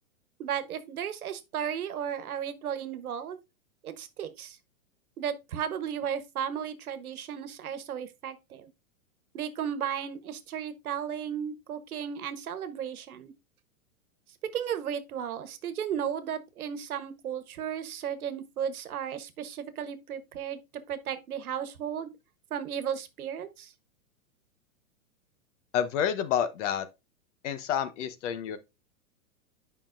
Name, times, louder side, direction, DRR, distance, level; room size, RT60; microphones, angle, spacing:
voice 1, 0.4-3.4 3.8-4.6 5.2-8.7 9.3-13.3 14.5-20.6 20.9-22.1 22.5-23.7, right 8 dB, 85° right, 1.2 m, -34 dB
voice 2, 25.7-26.9 27.4-28.6, left 9 dB, 55° left, 1.2 m, -29 dB
8.8 x 5.5 x 2.6 m
hypercardioid pair, 130°, 43 cm